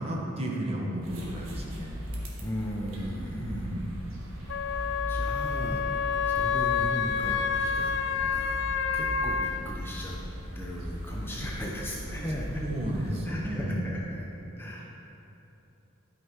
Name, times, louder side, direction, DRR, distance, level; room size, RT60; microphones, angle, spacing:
voice 1, 0.0-1.9 3.4-3.9 12.1-13.9, right 1 dB, 30° right, -2 dB, 1.2 m, -33 dB
sound 1, 1.0-13.4, equal, 80° right, 1.5 m, -38 dB
voice 2, 2.4-3.7 4.4-7.9 8.2-8.6 8.9-10.2 10.6-12.6 13.3-14.2 14.6-14.9, equal, 10° left, -4 dB, 0.8 m, -37 dB
Wind instrument woodwind instrument, 4.5-9.6, left 6 dB, 60° left, 0.4 m, -28 dB
12.0 x 5.7 x 4.7 m, 3.0 s
head